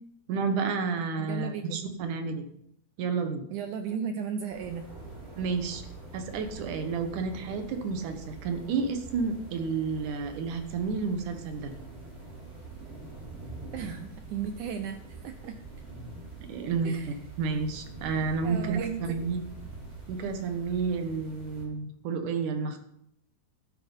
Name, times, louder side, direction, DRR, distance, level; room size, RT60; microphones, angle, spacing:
voice 1, 0.3-2.5 3.0-3.5 5.4-5.8 6.1-11.7 16.5-16.9 17.4-19.4 20.1-22.8, right 5 dB, 65° right, 7 dB, 2.4 m, -30 dB
voice 2, 1.2-1.8 3.5-4.9 13.7-15.6 16.8-17.2 18.4-19.3, right 7 dB, 85° right, 7 dB, 1.8 m, -35 dB
sound 1, 4.5-21.7, right 3 dB, 20° right, 2.1 m, -45 dB
12.0 x 7.7 x 5.3 m, 0.74 s
omnidirectional pair, 4.3 m